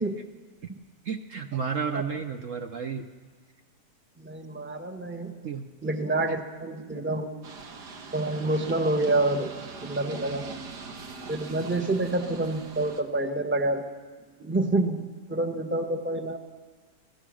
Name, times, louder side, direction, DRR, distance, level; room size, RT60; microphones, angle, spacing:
voice 1, 1.0-3.0 5.4-5.7 11.6-11.7, right 6 dB, 55° right, 5 dB, 1.1 m, -32 dB
voice 2, 4.2-5.4 5.8-7.3 8.1-9.5 9.8-10.4 11.3-13.9 14.4-16.4, right 2 dB, 10° right, 6 dB, 1.0 m, -28 dB
sound 1, 7.4-13.0, right 4 dB, 75° right, 2.0 m, -42 dB
29.0 x 17.0 x 6.3 m, 1.4 s
omnidirectional pair, 1.8 m